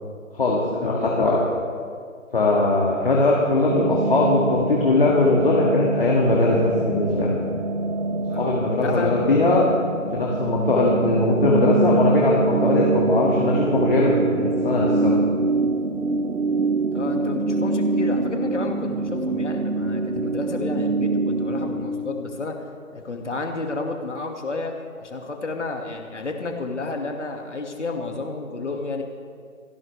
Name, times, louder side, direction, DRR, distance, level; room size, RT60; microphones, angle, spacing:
voice 1, 0.3-1.4 2.3-7.3 8.3-9.7 10.1-15.2, left 2 dB, 40° left, -4 dB, 2.3 m, -20 dB
sound 1, 3.7-21.9, right 3 dB, 65° right, 1.5 m, -25 dB
voice 2, 8.3-9.2 16.9-22.6 22.9-29.0, left 3 dB, 55° left, 3 dB, 2.3 m, -31 dB
29.0 x 11.0 x 3.4 m, 2.1 s
figure-of-eight pair, 160°, 41 cm